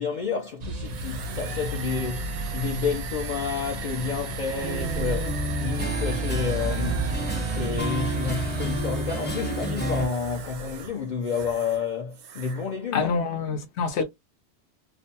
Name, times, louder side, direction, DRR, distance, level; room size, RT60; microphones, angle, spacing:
voice 1, 0.0-7.1 7.5-13.2, left 6 dB, 55° left, 0.5 m, -30 dB
sound 1, 0.6-8.8, equal, 55° right, 0.5 m, -34 dB
sound 2, 0.9-11.9 12.1-12.7, right 7 dB, 80° right, 0.9 m, -37 dB
sound 3, 4.6-10.1, right 1 dB, 10° left, 0.6 m, -29 dB
voice 2, 12.9-14.0, left 5 dB, 75° left, 0.9 m, -26 dB
2.5 x 2.1 x 2.7 m
omnidirectional pair, 1.2 m